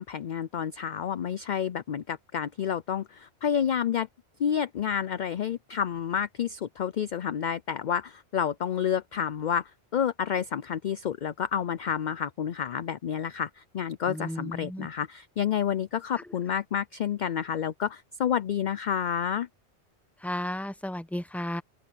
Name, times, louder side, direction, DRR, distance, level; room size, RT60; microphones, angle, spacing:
voice 1, 0.0-4.1 4.4-19.5, left 8 dB, 55° left, 0.6 m, -29 dB
voice 2, 14.2-14.9 20.2-21.6, left 1 dB, ahead, 1.1 m, -33 dB
open air
omnidirectional pair, 1.2 m